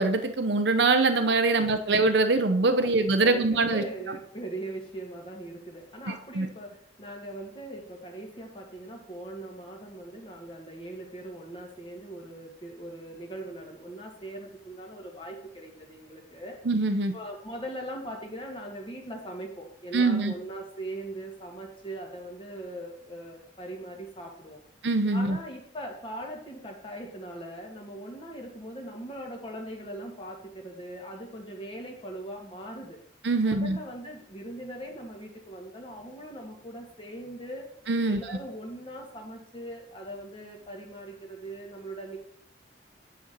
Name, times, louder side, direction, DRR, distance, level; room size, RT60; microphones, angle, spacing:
voice 1, 0.0-3.8 6.4-6.5 16.7-17.1 19.9-20.3 24.8-25.4 33.2-33.8 37.9-38.2, right 3 dB, 75° right, 9 dB, 0.8 m, -23 dB
voice 2, 2.8-16.6 17.1-24.6 25.1-33.0 33.4-37.7 38.1-42.2, right 1 dB, 30° left, 0 dB, 1.8 m, -40 dB
9.4 x 4.4 x 6.7 m, 0.64 s
head